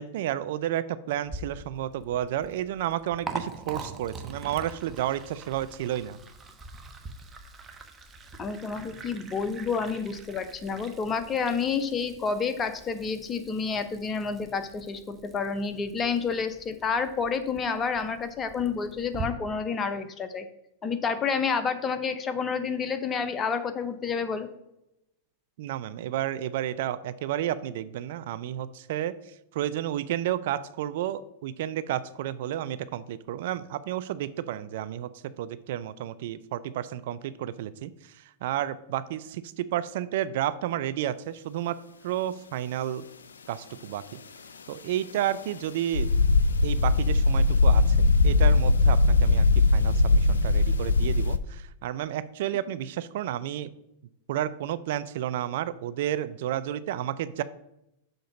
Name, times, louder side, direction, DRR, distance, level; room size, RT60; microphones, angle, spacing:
voice 1, 0.0-6.2 25.6-35.1 35.4-41.8 42.0-43.0 43.5-44.2 44.7-46.1 46.6-49.5 49.7-53.7 54.3-57.4, right 12 dB, 60° right, 15 dB, 0.4 m, -31 dB
Liquid, 1.2-19.2, right 3 dB, 20° right, 0.9 m, -44 dB
voice 2, 8.4-20.4 20.8-24.5, left 5 dB, 25° left, 9 dB, 0.8 m, -29 dB
sound 1, 45.9-51.4, left 3 dB, 80° left, 0.4 m, -20 dB
6.6 x 3.8 x 5.7 m, 0.84 s
hypercardioid pair, 100°, 0 cm